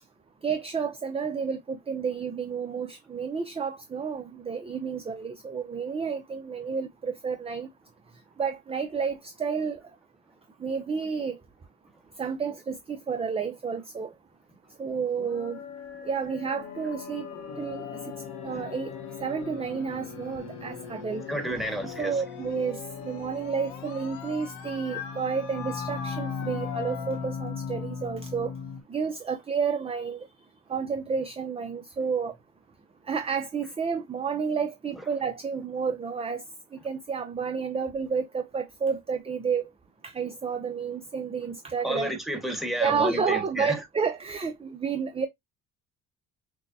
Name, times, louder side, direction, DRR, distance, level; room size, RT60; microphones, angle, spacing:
voice 1, 0.4-7.7 8.4-9.8 10.6-11.4 12.2-14.1 14.8-15.6 16.1-17.3 17.6-17.8 18.4-18.9 19.2-21.2 22.0-28.5 28.9-30.3 30.7-32.3 33.1-36.4 36.8-39.6 40.0-42.1 42.8-45.3, right 6 dB, 20° right, 0.6 m, -30 dB
sound 1, 15.2-28.8, left 6 dB, 85° left, 1.3 m, -38 dB
voice 2, 21.3-22.1 41.8-43.7, equal, ahead, 1.4 m, -31 dB
6.1 x 2.2 x 2.7 m
cardioid pair, 100°, 33 cm